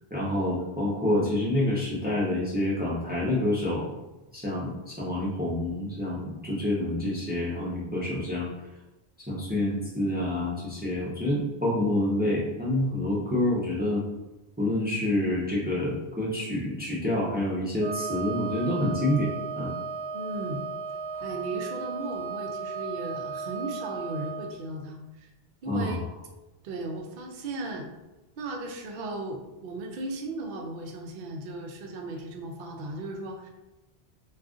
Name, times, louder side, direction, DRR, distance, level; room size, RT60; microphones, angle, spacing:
voice 1, 0.1-3.9 4.3-8.5 9.3-14.0 14.6-19.7 25.7-26.0, left 1 dB, 10° right, -6 dB, 0.6 m, -27 dB
Wind instrument woodwind instrument, 17.8-24.5, right 5 dB, 85° right, 0.9 m, -35 dB
voice 2, 20.1-20.6 21.2-25.3 25.6-26.0 26.6-27.9 28.4-33.5, right 2 dB, 60° right, 1 dB, 0.6 m, -36 dB
2.5 x 2.4 x 3.6 m, 1.0 s
omnidirectional pair, 1.1 m